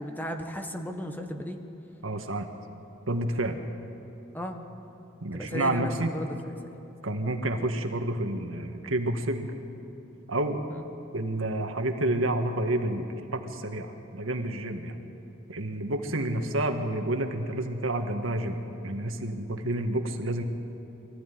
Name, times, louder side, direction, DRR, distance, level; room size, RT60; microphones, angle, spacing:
voice 1, 0.0-1.6 4.3-4.6 5.3-6.5 10.7-10.8 16.1-16.3, left 1 dB, 10° left, 5 dB, 1.4 m, -35 dB
voice 2, 2.0-2.5 3.1-3.6 5.2-6.1 7.0-9.5 10.3-10.6 11.1-15.0 15.5-20.4, right 1 dB, 90° right, 5 dB, 1.7 m, -29 dB
23.5 x 14.5 x 9.4 m, 2.8 s
head